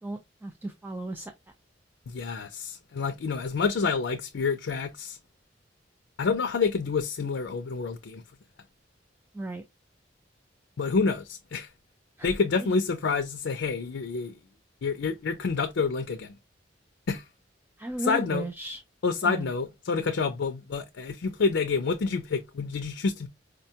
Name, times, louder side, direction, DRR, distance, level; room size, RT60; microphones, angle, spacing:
voice 1, 0.0-1.3 9.3-9.6 12.2-12.3 12.6-12.7 17.8-18.8 19.2-19.5, right 1 dB, 10° right, 0.3 m, -35 dB
voice 2, 2.1-5.2 6.2-8.2 10.8-11.7 12.2-14.3 14.8-16.3 17.1-17.2 18.0-18.4 19.0-23.3, left 4 dB, 80° left, 0.5 m, -28 dB
5.0 x 2.2 x 2.7 m
head